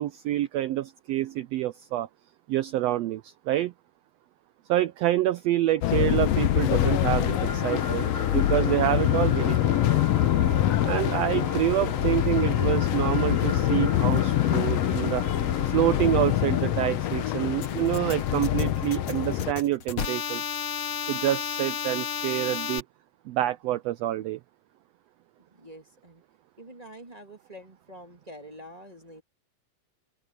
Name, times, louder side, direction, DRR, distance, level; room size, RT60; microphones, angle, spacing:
voice 1, 0.0-2.1 2.5-3.7 4.7-9.6 10.8-15.2 15.7-20.4 21.1-22.8 23.3-24.4, right 14 dB, 80° right, 1.5 m, -27 dB
sound 1, 5.8-19.5, left 13 dB, 70° left, 1.7 m, -25 dB
sound 2, 6.3-19.6, left 4 dB, 25° left, 2.9 m, -35 dB
voice 2, 11.1-11.5 25.6-26.2 26.6-29.2, equal, 15° right, 1.9 m, -46 dB
sound 3, 17.6-22.8, left 7 dB, 55° left, 2.7 m, -32 dB
open air
omnidirectional pair, 3.5 m